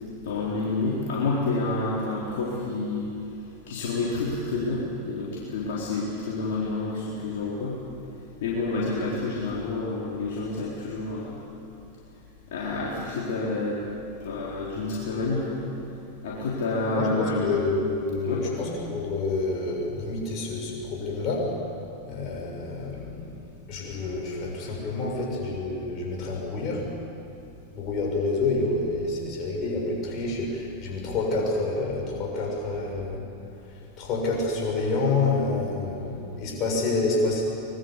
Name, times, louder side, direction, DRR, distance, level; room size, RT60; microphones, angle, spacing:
voice 1, 0.2-3.1 3.7-7.8 8.4-11.4 12.5-13.8 14.2-15.6 16.2-17.6 18.2-18.4, left 3 dB, 55° left, -6 dB, 4.1 m, -28 dB
voice 2, 16.8-21.5 22.0-23.3 23.7-26.9 27.7-33.2 33.7-37.4, left 3 dB, 35° left, -1 dB, 6.8 m, -28 dB
24.0 x 21.5 x 8.5 m, 2.7 s
figure-of-eight pair, 90°, 0 cm